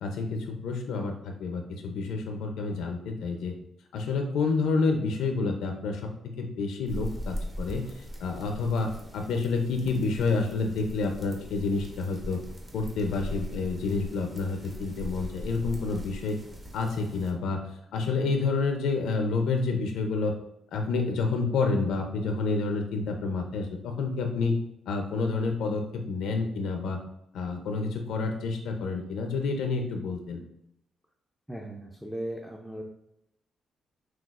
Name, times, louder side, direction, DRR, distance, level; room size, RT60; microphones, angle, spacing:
voice 1, 0.0-3.5 3.9-6.1 6.4-12.4 12.7-16.4 16.7-20.3 20.7-24.5 24.9-27.0 27.3-30.4, left 4 dB, 90° left, 4 dB, 0.5 m, -29 dB
sound 1, 6.9-17.3, equal, 25° right, 0.9 m, -40 dB
voice 2, 31.5-32.8, right 1 dB, ahead, 0 dB, 0.4 m, -37 dB
5.8 x 2.3 x 2.4 m, 0.79 s
cardioid pair, 110°, 0 cm